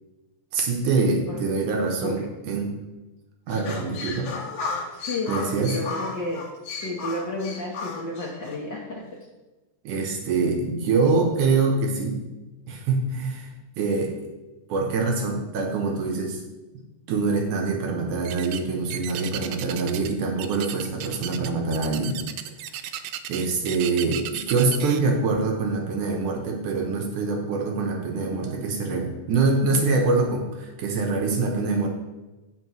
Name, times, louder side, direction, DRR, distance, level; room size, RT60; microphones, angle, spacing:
voice 1, 0.5-2.8 3.5-4.3 5.3-5.8 9.8-12.2 12.7-13.5 13.8-14.1 14.7-16.4 16.7-22.2 23.3-31.9, right 3 dB, 70° right, 1 dB, 2.5 m, -25 dB
sound 1, 3.5-8.6, left 4 dB, 60° left, 2.1 m, -34 dB
voice 2, 4.9-6.4 6.7-9.2, left 2 dB, 80° left, -4 dB, 1.0 m, -32 dB
sound 2, 18.2-18.6 18.9-20.1 20.4-25.0, right 11 dB, 90° right, 2.3 m, -35 dB
15.5 x 5.5 x 3.1 m, 1.1 s
omnidirectional pair, 3.9 m